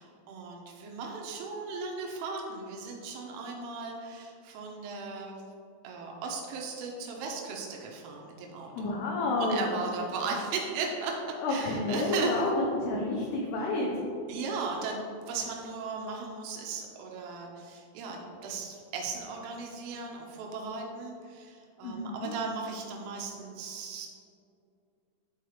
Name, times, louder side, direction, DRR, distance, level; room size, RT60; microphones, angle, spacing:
voice 1, 0.0-5.4 5.8-8.9 9.4-12.4 13.6-13.7 14.3-15.0 15.3-24.1, right 4 dB, 90° right, 0 dB, 3.4 m, -37 dB
voice 2, 8.8-9.6 11.4-13.9 21.8-22.3, left 2 dB, 80° left, -2 dB, 2.4 m, -29 dB
11.5 x 4.7 x 3.3 m, 2.4 s
omnidirectional pair, 5.6 m